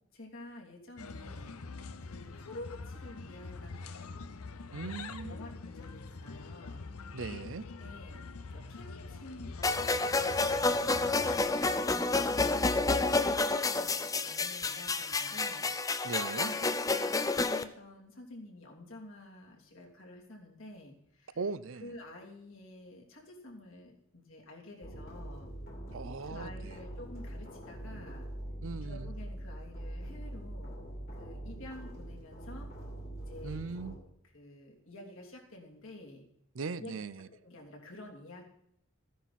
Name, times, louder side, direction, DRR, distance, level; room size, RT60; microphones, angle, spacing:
voice 1, 0.1-1.5 2.0-4.2 4.8-4.9 5.3-6.9 7.8-8.2 8.5-16.1 16.4-21.4 21.8-25.5 26.2-28.3 28.8-30.7 31.2-32.7 33.2-34.1 34.3-36.2 36.8-36.9 37.3-38.5, left 1 dB, 65° left, 0 dB, 2.9 m, -50 dB
sound 1, 1.0-11.4, left 4 dB, 85° left, 0.8 m, -44 dB
voice 2, 4.7-5.4 7.1-7.7 16.0-16.5 21.4-21.9 25.9-26.8 28.6-29.1 33.4-34.0 36.5-37.3, right 4 dB, 65° right, 16 dB, 0.6 m, -39 dB
sound 2, 9.6-17.6, left 3 dB, 15° left, 0.5 m, -29 dB
sound 3, 24.8-34.0, right 1 dB, 45° left, 2.5 m, -43 dB
15.0 x 10.0 x 4.2 m, 0.74 s
head